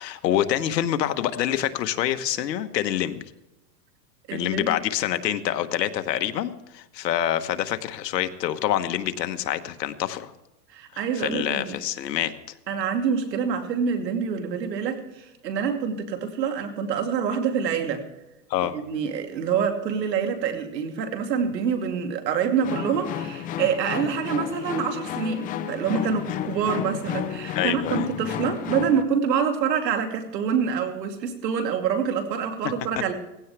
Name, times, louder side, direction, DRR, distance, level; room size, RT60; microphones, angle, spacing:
voice 1, 0.0-3.2 4.3-10.3 10.9-12.3 18.5-18.7 26.3-26.4 27.5-28.1, left 11 dB, 85° left, 9 dB, 1.3 m, -26 dB
voice 2, 4.3-4.7 10.7-11.7 12.7-18.0 18.6-33.1, right 7 dB, 90° right, 5 dB, 2.5 m, -26 dB
sound 1, 22.6-29.0, left 10 dB, 15° left, 0.6 m, -32 dB
17.5 x 16.0 x 3.4 m, 0.94 s
supercardioid pair, 150°, 48 cm